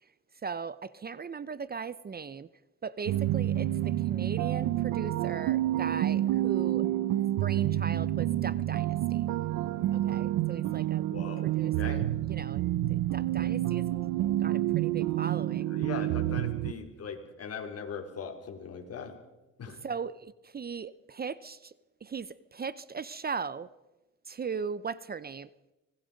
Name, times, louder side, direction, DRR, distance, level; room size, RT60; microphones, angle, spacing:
voice 1, 0.4-2.5 2.8-6.9 7.4-9.3 9.9-11.0 11.4-13.8 14.2-15.7 19.8-21.7 22.0-23.7 24.3-25.5, right 5 dB, 30° right, 17 dB, 0.7 m, -38 dB
sound 1, 3.1-16.7, right 13 dB, 85° right, 0.7 m, -29 dB
voice 2, 11.1-12.0 15.2-15.3 15.7-19.1 19.6-19.8, left 6 dB, 55° left, 3 dB, 4.4 m, -40 dB
25.0 x 19.5 x 5.3 m, 1.0 s
cardioid pair, 90°, 30 cm